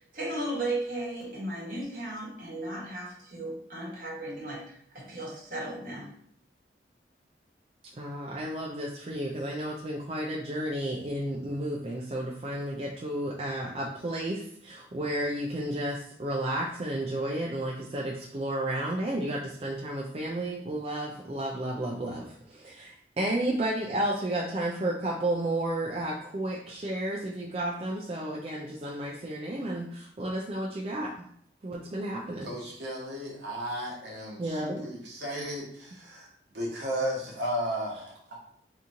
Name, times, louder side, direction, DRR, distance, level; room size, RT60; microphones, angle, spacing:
voice 1, 0.0-6.1, right 1 dB, 50° right, -4 dB, 1.2 m, -35 dB
voice 2, 8.0-31.1 31.6-32.5 34.4-34.8, right 1 dB, 35° right, -3 dB, 0.3 m, -32 dB
voice 3, 32.4-36.3 36.5-38.3, equal, 75° right, -3 dB, 1.1 m, -34 dB
2.9 x 2.6 x 3.6 m, 0.65 s
head